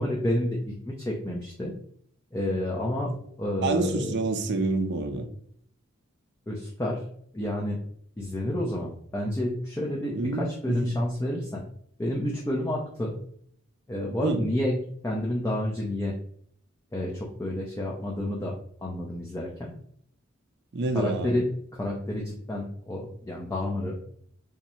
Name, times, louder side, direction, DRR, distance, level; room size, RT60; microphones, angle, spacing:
voice 1, 0.0-1.7 2.3-4.2 6.5-7.0 7.3-7.8 8.2-11.6 12.0-13.2 13.9-16.1 16.9-18.6 18.8-19.7 20.9-24.0, left 1 dB, 15° left, -2 dB, 0.5 m, -30 dB
voice 2, 3.6-5.3 10.1-10.9 14.2-14.4 20.7-21.4, right 2 dB, 55° right, 6 dB, 0.5 m, -28 dB
3.5 x 2.0 x 4.2 m, 0.64 s
head